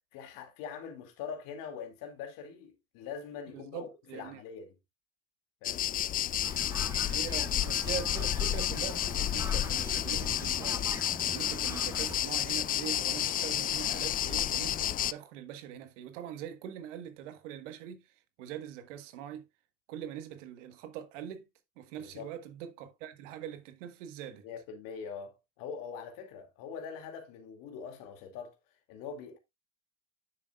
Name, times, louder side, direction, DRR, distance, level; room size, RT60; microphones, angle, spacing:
voice 1, 0.1-4.7 5.6-5.9 22.0-22.3 24.4-28.6 28.9-29.4, left 6 dB, 65° left, 2.5 m, -43 dB
voice 2, 3.5-4.4 7.1-10.9 11.3-18.1 18.4-19.4 19.9-21.4 21.8-24.5, right 10 dB, 75° right, 1.6 m, -42 dB
sound 1, 5.6-15.1, left 11 dB, 25° left, 0.3 m, -31 dB
sound 2, 6.4-12.1, right 1 dB, 10° right, 2.1 m, -43 dB
9.5 x 7.4 x 2.4 m
hypercardioid pair, 85°, 37 cm